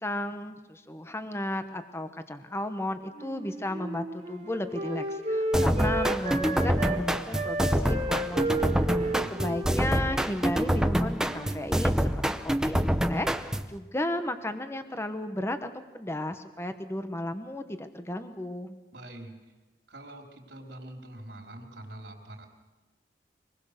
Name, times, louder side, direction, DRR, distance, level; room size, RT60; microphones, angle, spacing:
voice 1, 0.0-8.9 9.3-12.1 12.4-12.8 13.1-15.7 15.9-18.8, left 1 dB, 15° left, 8 dB, 1.1 m, -34 dB
Wind instrument woodwind instrument, 3.1-7.0 7.3-10.9 11.2-11.7, right 1 dB, 40° right, 2.4 m, -33 dB
sound 1, 5.5-13.8, equal, 5° right, 0.7 m, -27 dB
voice 2, 9.0-9.8 18.9-19.3 19.9-22.5, right 1 dB, 80° right, 1 dB, 3.9 m, -45 dB
25.0 x 20.0 x 6.7 m, 1.2 s
head